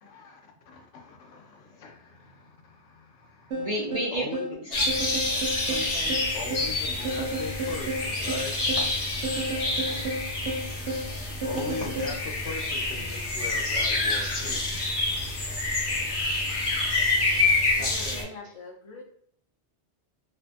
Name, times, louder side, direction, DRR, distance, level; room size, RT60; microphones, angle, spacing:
voice 1, 0.0-0.4 0.7-3.7 4.1-4.4 6.3-8.5 11.4-14.8, left 4 dB, 85° left, 2 dB, 0.9 m, -40 dB
voice 2, 3.5-4.9 5.6-6.2 9.8-10.1 11.5-12.1 17.8-18.5, right 1 dB, 50° right, -5 dB, 0.4 m, -35 dB
sound 1, 3.5-12.2, right 1 dB, 75° right, 1.0 m, -32 dB
sound 2, 4.7-18.2, left 2 dB, 55° left, 1.0 m, -28 dB
voice 3, 17.8-19.0, left 3 dB, 35° left, -3 dB, 0.6 m, -43 dB
2.7 x 2.2 x 2.5 m, 0.64 s
omnidirectional pair, 1.2 m